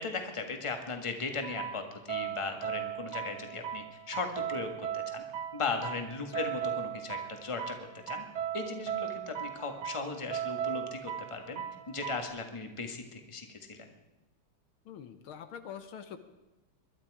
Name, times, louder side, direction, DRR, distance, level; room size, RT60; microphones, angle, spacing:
voice 1, 0.0-5.2 5.5-8.2 8.5-11.6 11.9-13.9, left 4 dB, 15° left, 4 dB, 1.5 m, -37 dB
sound 1, 1.4-12.2, right 9 dB, 75° right, 1.8 m, -38 dB
voice 2, 14.9-16.2, left 8 dB, 75° left, 9 dB, 1.8 m, -45 dB
22.5 x 12.0 x 4.9 m, 1.0 s
omnidirectional pair, 2.3 m